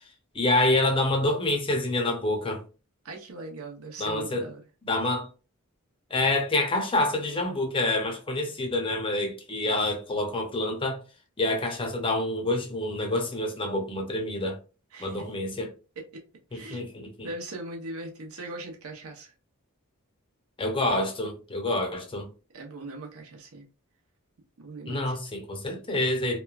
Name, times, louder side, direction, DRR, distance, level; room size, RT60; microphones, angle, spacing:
voice 1, 0.3-2.6 4.0-4.5 4.8-5.3 6.1-11.0 11.4-14.6 15.0-15.7 16.5-17.3 20.6-22.3 24.9-26.4, left 2 dB, 25° left, 0.5 m, -27 dB
voice 2, 3.0-4.6 14.9-15.3 16.0-16.2 16.5-16.8 17.2-19.3 22.5-23.7 24.6-25.2, right 2 dB, 75° right, 0.7 m, -40 dB
2.9 x 2.2 x 2.3 m
head